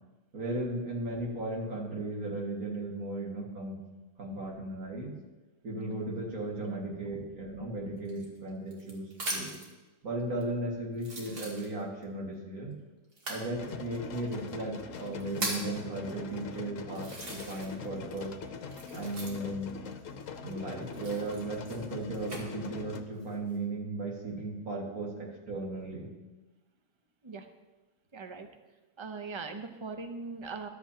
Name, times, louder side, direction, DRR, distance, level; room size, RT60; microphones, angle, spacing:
voice 1, 0.3-3.8 4.2-5.2 5.6-9.6 10.0-12.7 13.3-18.3 18.9-19.7 20.4-26.1, right 2 dB, 65° right, -2 dB, 2.3 m, -36 dB
sound 1, 8.0-9.7 10.4-10.5 11.0-12.0 13.1-13.5 14.3-14.4 15.0-15.8 16.4-16.5 16.9-17.8 18.1-19.6 20.9-22.4 23.1-23.6, right 2 dB, 85° right, 2.4 m, -39 dB
sound 2, 13.5-23.0, left 5 dB, 60° left, 1.1 m, -43 dB
voice 2, 28.1-28.5 29.0-30.7, right 4 dB, 40° right, 7 dB, 0.4 m, -40 dB
14.0 x 11.5 x 2.8 m, 1.2 s
omnidirectional pair, 1.6 m